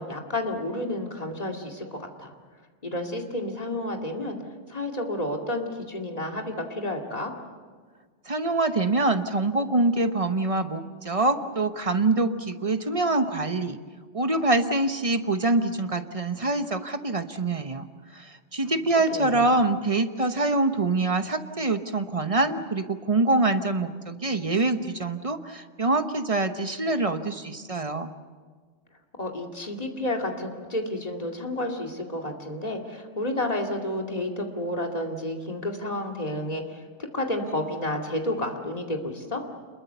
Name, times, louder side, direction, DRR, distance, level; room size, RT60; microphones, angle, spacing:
voice 1, 0.0-2.3 2.8-4.4 4.7-7.3 18.6-18.7 19.1-19.5 29.2-36.8 37.1-39.4, left 1 dB, 30° left, 2 dB, 2.5 m, -31 dB
voice 2, 8.3-13.8 14.1-17.9 18.1-28.1, right 2 dB, 30° right, 8 dB, 1.0 m, -25 dB
27.5 x 21.5 x 6.9 m, 1.5 s
omnidirectional pair, 1.3 m